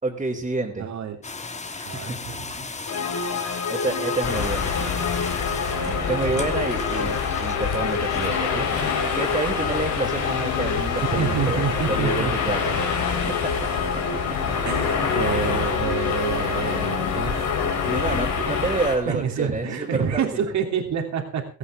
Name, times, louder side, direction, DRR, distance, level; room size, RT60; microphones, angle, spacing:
voice 1, 0.0-0.9 1.8-2.2 2.6-2.8 3.7-4.9 5.7-8.7 9.2-12.6 17.8-20.4, right 2 dB, 20° right, -3 dB, 3.3 m, -28 dB
voice 2, 0.8-1.2 1.8-2.5 5.7-6.3 9.5-9.8 11.0-12.4 14.6-17.4 18.1-18.7 19.0-21.5, right 7 dB, 65° right, 3 dB, 3.0 m, -28 dB
sound 1, 1.2-10.7, left 3 dB, 25° left, 1.5 m, -37 dB
sound 2, 2.9-18.9, left 6 dB, 60° left, 2.4 m, -29 dB
sound 3, 4.2-19.0, left 5 dB, 85° left, 3.8 m, -27 dB
16.0 x 15.0 x 3.6 m, 0.35 s
cardioid pair, 90°, 30 cm